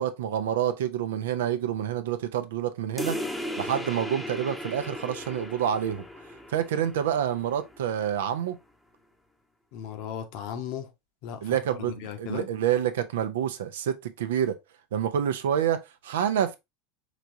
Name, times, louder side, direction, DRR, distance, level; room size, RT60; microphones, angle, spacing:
voice 1, 0.0-3.2 3.6-6.0 6.5-8.6 11.4-14.6 14.9-16.6, right 9 dB, 60° right, 0.6 m, -28 dB
sound 1, 3.0-8.0, left 1 dB, 5° left, 0.8 m, -37 dB
voice 2, 9.7-10.9 11.2-11.6 11.9-12.5, left 8 dB, 50° left, 0.9 m, -36 dB
5.0 x 3.3 x 2.7 m
figure-of-eight pair, 80°, 0 cm